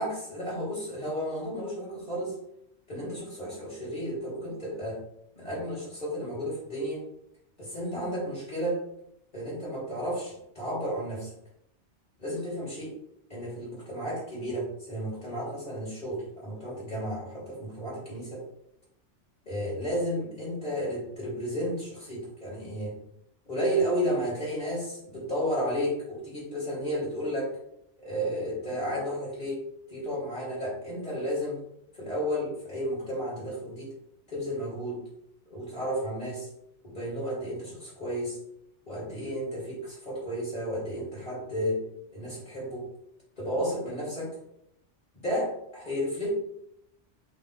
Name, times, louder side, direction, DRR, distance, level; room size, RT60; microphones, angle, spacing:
voice 1, 0.0-2.3 2.9-5.0 5.3-7.0 7.6-8.8 9.3-11.3 12.2-12.9 13.3-18.5 19.5-23.0 23.5-27.6 28.0-29.6 29.9-31.6 31.9-33.9 34.3-35.0 35.5-36.5 36.8-38.4 38.9-41.8 42.1-42.9 43.4-44.4 45.2-46.3, equal, 40° left, -6 dB, 2.9 m, -32 dB
6.2 x 5.4 x 3.2 m, 0.75 s
omnidirectional pair, 1.2 m